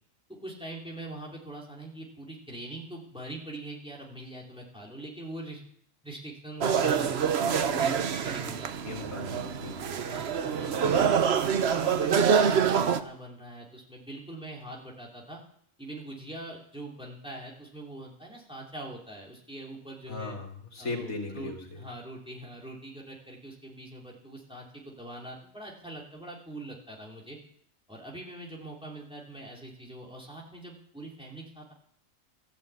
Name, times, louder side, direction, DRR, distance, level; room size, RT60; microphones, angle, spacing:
voice 1, 0.4-5.6 6.0-8.7 9.9-15.4 15.8-20.4 20.8-27.4 27.9-31.7, right 1 dB, 5° right, -2 dB, 3.2 m, -43 dB
sound 1, 6.6-13.0, right 7 dB, 55° right, 1.0 m, -26 dB
voice 2, 8.8-10.0 20.1-21.6, left 3 dB, 85° left, 2 dB, 2.8 m, -37 dB
14.0 x 10.5 x 8.3 m, 0.66 s
omnidirectional pair, 1.4 m